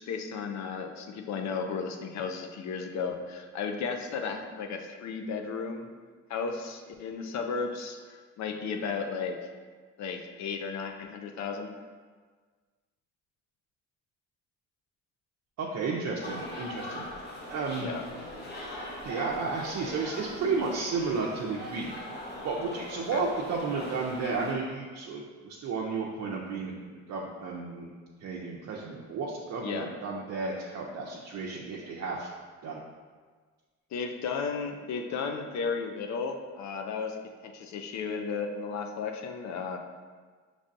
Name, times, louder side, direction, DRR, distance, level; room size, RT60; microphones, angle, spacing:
voice 1, 0.0-5.9 6.3-9.5 10.0-11.7 17.8-18.0 23.1-23.2 29.6-29.9 33.9-37.2 37.4-39.8, left 5 dB, 65° left, 5 dB, 0.5 m, -34 dB
voice 2, 15.6-17.1 17.5-17.9 19.0-26.7 27.1-27.9 28.2-32.3 32.6-32.8, right 4 dB, 65° right, -2 dB, 0.6 m, -33 dB
sound 1, 16.2-24.5, left 1 dB, 35° left, 0.9 m, -41 dB
5.2 x 3.3 x 2.6 m, 1.5 s
cardioid pair, 90°, 30 cm